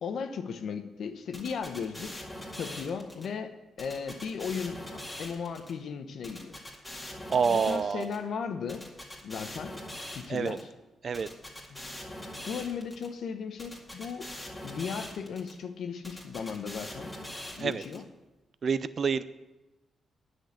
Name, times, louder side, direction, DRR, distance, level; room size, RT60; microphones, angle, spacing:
voice 1, 0.0-2.3 2.5-6.6 7.5-8.8 9.2-9.8 10.1-10.7 11.7-11.8 12.4-14.3 14.6-17.2 17.6-18.0, left 6 dB, 65° left, 7 dB, 0.9 m, -36 dB
sound 1, 1.3-3.3 3.8-5.7 6.2-8.2 8.7-10.6 11.1-13.1 13.6-15.5 16.0-18.0, left 1 dB, 5° left, 2.0 m, -42 dB
voice 2, 7.3-8.1 10.3-10.6 11.0-11.3 17.6-17.8 18.6-19.2, right 6 dB, 45° right, 15 dB, 0.5 m, -27 dB
10.5 x 6.4 x 8.3 m, 1.1 s
cardioid pair, 140°, 0 cm